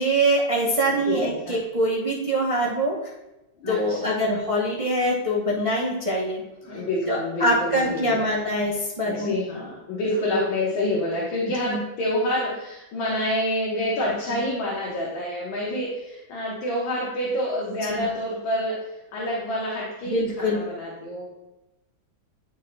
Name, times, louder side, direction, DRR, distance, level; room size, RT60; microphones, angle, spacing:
voice 1, 0.0-2.9 3.7-6.4 7.1-9.3 11.7-11.8 14.3-14.4 17.9-18.1 20.1-20.6, right 1 dB, 45° right, -4 dB, 0.4 m, -24 dB
voice 2, 1.0-1.6 3.6-4.1 6.6-8.3 9.0-21.2, left 1 dB, 85° left, -5 dB, 2.0 m, -27 dB
11.5 x 4.0 x 2.2 m, 0.97 s
omnidirectional pair, 2.1 m